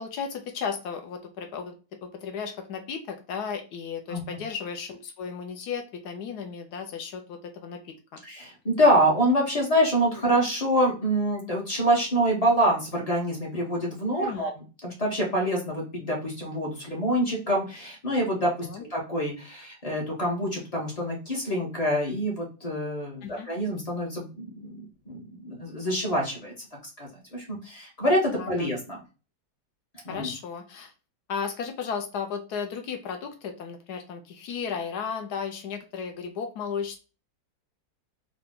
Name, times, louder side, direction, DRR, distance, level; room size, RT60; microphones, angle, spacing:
voice 1, 0.0-1.7 2.0-8.2 14.1-14.5 18.6-18.8 23.2-23.5 28.4-28.7 30.1-30.9 31.3-37.0, left 6 dB, 65° left, 5 dB, 1.1 m, -34 dB
voice 2, 4.1-4.4 8.2-14.5 14.8-26.5 27.0-29.0 30.0-30.3, equal, 30° left, -2 dB, 0.7 m, -26 dB
3.8 x 2.3 x 3.5 m, 0.33 s
omnidirectional pair, 2.1 m